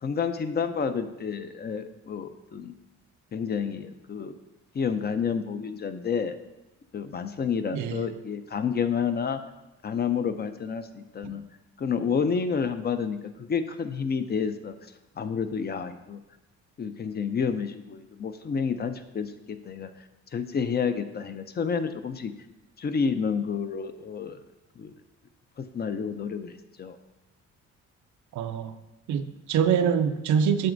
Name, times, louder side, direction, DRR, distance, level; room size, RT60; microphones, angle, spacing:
voice 1, 0.0-2.7 3.3-4.4 4.7-6.4 6.9-9.4 9.8-11.4 11.8-14.7 15.2-16.2 16.8-19.9 20.3-22.3 22.8-24.4 24.8-24.9 25.6-27.0, left 6 dB, 35° left, 9 dB, 0.5 m, -29 dB
voice 2, 7.7-8.1 11.2-11.3 28.3-28.7 29.1-30.7, right 7 dB, 75° right, 10 dB, 0.6 m, -25 dB
7.6 x 7.0 x 2.6 m, 1.0 s
cardioid pair, 90°, 30 cm